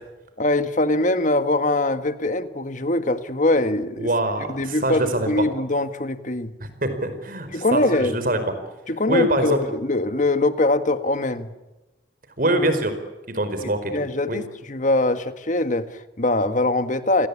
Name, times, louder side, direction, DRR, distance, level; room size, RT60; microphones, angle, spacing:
voice 1, 0.4-4.1 4.5-6.5 7.5-8.2 8.9-11.5 13.6-17.3, left 2 dB, 45° left, 10 dB, 1.7 m, -22 dB
voice 2, 4.0-5.4 6.6-8.4 9.1-9.6 12.4-12.9 13.3-14.4, right 1 dB, 50° right, 9 dB, 4.8 m, -24 dB
29.5 x 21.0 x 8.6 m, 1.1 s
head